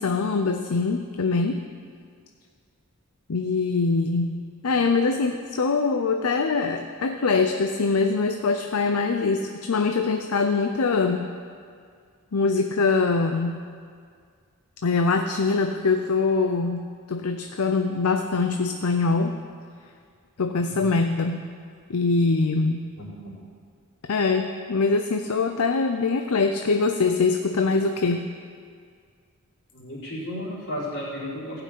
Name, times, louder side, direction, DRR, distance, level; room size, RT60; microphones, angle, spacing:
voice 1, 0.0-1.6 3.3-4.4 4.6-11.2 12.3-13.6 14.8-16.8 17.1-19.4 20.4-21.4 21.9-22.8 24.1-28.3, left 4 dB, 70° left, 6 dB, 0.6 m, -23 dB
voice 2, 20.6-20.9 23.0-23.3 29.7-31.6, equal, 55° left, -7 dB, 4.2 m, -34 dB
15.5 x 5.9 x 8.5 m, 2.1 s
head